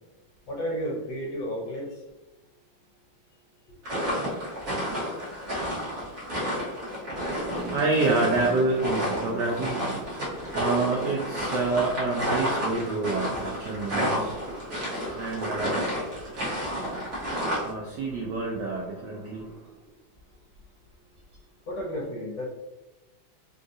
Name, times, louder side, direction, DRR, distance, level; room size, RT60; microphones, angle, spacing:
voice 1, 0.5-2.0 21.7-22.5, equal, 65° left, -2 dB, 1.3 m, -32 dB
sound 1, 3.9-17.7, equal, 50° right, 1.3 m, -31 dB
voice 2, 7.2-19.8, right 3 dB, 75° right, -3 dB, 0.9 m, -29 dB
3.7 x 2.4 x 2.6 m, 1.0 s
omnidirectional pair, 2.3 m